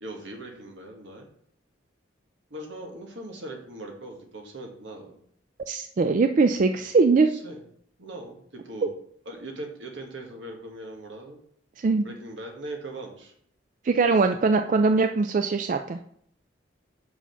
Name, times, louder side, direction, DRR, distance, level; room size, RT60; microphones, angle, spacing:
voice 1, 0.0-1.3 2.5-5.2 7.3-7.6 8.0-8.9 9.2-11.4 12.0-13.3, right 1 dB, 75° right, 2 dB, 1.6 m, -40 dB
voice 2, 5.7-7.3 11.8-12.1 13.8-16.0, right 4 dB, 45° right, 7 dB, 0.3 m, -21 dB
5.7 x 5.0 x 5.5 m, 0.66 s
head